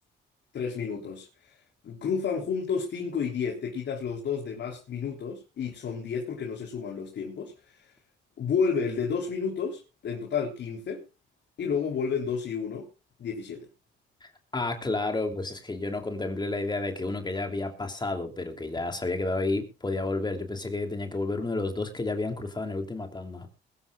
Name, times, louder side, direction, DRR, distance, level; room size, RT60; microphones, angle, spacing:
voice 1, 0.5-1.3 1.8-7.5 8.4-11.0 11.6-12.9 13.2-13.7, left 6 dB, 65° left, 4.0 m, -31 dB
voice 2, 14.5-23.5, left 2 dB, 20° left, 3.0 m, -31 dB
21.5 x 13.5 x 2.4 m
cardioid pair, 90°, 20 cm